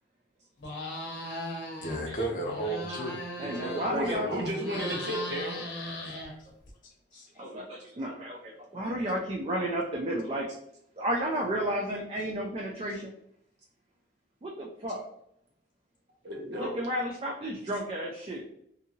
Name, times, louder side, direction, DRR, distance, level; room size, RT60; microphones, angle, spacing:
sound 1, 0.6-2.0 2.3-4.1 4.5-6.7, left 1 dB, 90° left, 0.7 m, -38 dB
voice 1, 1.8-4.5 4.8-4.9 7.1-7.4, right 1 dB, 45° left, 1 dB, 0.6 m, -35 dB
voice 2, 3.4-4.3 7.1-10.5 11.0-13.1 14.4-15.1 16.6-18.4, right 1 dB, 30° right, -1 dB, 0.3 m, -32 dB
voice 3, 3.9-5.6 16.2-16.8, equal, 70° right, -1 dB, 0.9 m, -33 dB
2.7 x 2.6 x 2.7 m, 0.73 s
head